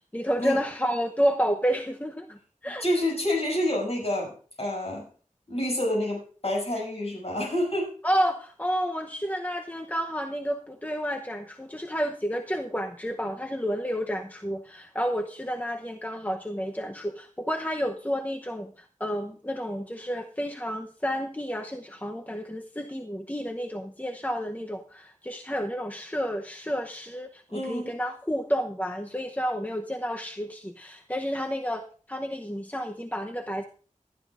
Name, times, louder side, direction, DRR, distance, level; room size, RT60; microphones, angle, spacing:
voice 1, 0.1-2.8 8.0-33.7, equal, 10° left, 4 dB, 0.8 m, -30 dB
voice 2, 2.8-4.3 4.6-5.1 5.5-7.9 27.5-27.9, left 1 dB, 50° left, -1 dB, 7.0 m, -28 dB
18.5 x 12.0 x 2.5 m, 0.40 s
wide cardioid pair, 65°, 13 cm